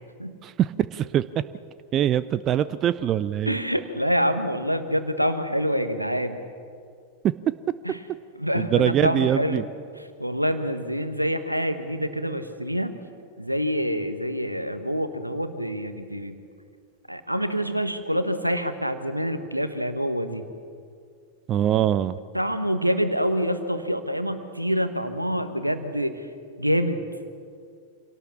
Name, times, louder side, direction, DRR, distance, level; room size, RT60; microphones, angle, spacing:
voice 1, 0.4-1.3 1.9-3.6 7.2-7.3 8.5-9.6 21.5-22.2, right 11 dB, 30° right, 16 dB, 0.5 m, -23 dB
voice 2, 3.5-6.4 7.8-8.0 8.4-9.7 10.2-12.9 13.4-16.4 17.1-20.4 22.3-26.3 26.6-27.0, equal, 90° right, 9 dB, 1.4 m, -26 dB
26.5 x 17.5 x 7.2 m, 2.2 s
figure-of-eight pair, 90°, 0 cm